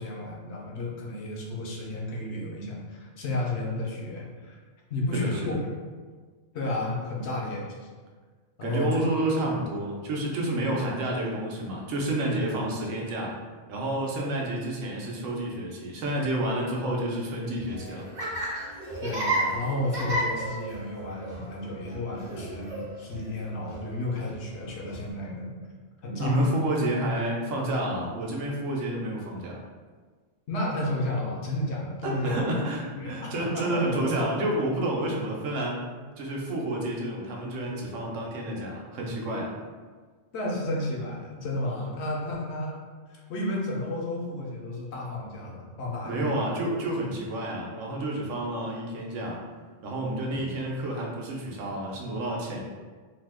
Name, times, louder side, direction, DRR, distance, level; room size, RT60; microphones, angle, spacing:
voice 1, 0.0-4.6 4.9-5.5 6.5-7.9 8.6-9.0 19.0-25.5 26.0-26.5 30.5-32.4 32.9-33.8 40.3-42.8 43.1-46.4 50.3-50.6, left 1 dB, 65° left, -2 dB, 0.9 m, -32 dB
voice 2, 5.1-5.6 8.6-13.4 13.7-18.1 26.2-29.6 32.0-35.8 36.2-39.5 46.0-49.4 49.8-52.6, right 1 dB, 85° right, -1 dB, 1.0 m, -29 dB
Laughter, 17.6-25.1, right 1 dB, 45° right, 0.7 m, -33 dB
2.7 x 2.2 x 3.3 m, 1.5 s
omnidirectional pair, 1.2 m